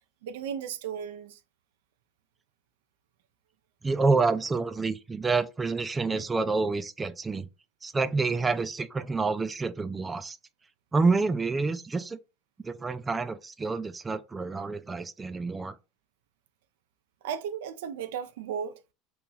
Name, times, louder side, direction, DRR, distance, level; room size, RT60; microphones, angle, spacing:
voice 1, 0.2-1.4 6.1-6.2 17.2-18.7, right 8 dB, 85° right, 0.5 m, -35 dB
voice 2, 3.8-7.5 7.8-10.4 10.9-12.2 12.6-15.8, right 4 dB, 20° right, 0.4 m, -28 dB
3.0 x 2.9 x 3.6 m
supercardioid pair, 105°, 0 cm